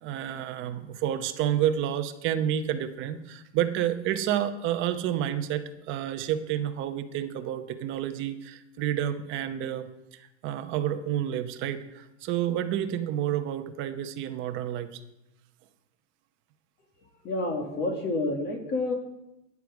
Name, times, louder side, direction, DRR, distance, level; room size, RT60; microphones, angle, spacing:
voice 1, 0.0-15.0, right 10 dB, 30° right, 8 dB, 0.9 m, -30 dB
voice 2, 17.2-18.9, left 2 dB, 30° left, 3 dB, 1.9 m, -29 dB
13.0 x 9.7 x 4.8 m, 0.92 s
supercardioid pair, 150°, 37 cm